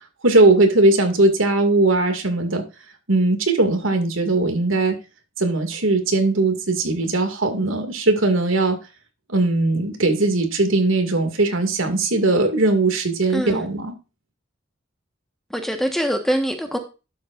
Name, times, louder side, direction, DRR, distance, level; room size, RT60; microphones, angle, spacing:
voice 1, 0.2-2.6 3.1-5.0 5.4-8.8 9.3-14.0, right 2 dB, 80° right, 2.2 m, -19 dB
voice 2, 13.3-13.7 15.5-16.8, equal, ahead, 1.3 m, -23 dB
12.0 x 7.6 x 2.5 m
head